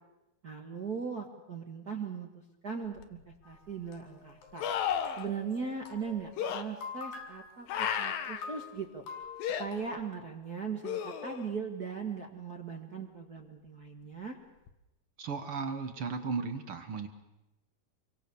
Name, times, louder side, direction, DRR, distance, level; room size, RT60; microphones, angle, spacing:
voice 1, 0.4-4.7 5.2-9.0 9.6-14.4, right 5 dB, 40° right, 2 dB, 1.3 m, -39 dB
sound 1, 3.0-3.1 4.6-5.3 6.4-6.6 7.7-8.4 9.4-9.7 10.8-11.5 14.7-14.8, left 8 dB, 70° left, 3.0 m, -33 dB
sound 2, 3.4-9.8, left 5 dB, 85° left, 6.6 m, -47 dB
voice 2, 15.2-17.1, right 5 dB, 60° right, 8 dB, 1.5 m, -35 dB
27.0 x 24.0 x 7.0 m, 0.95 s
omnidirectional pair, 4.4 m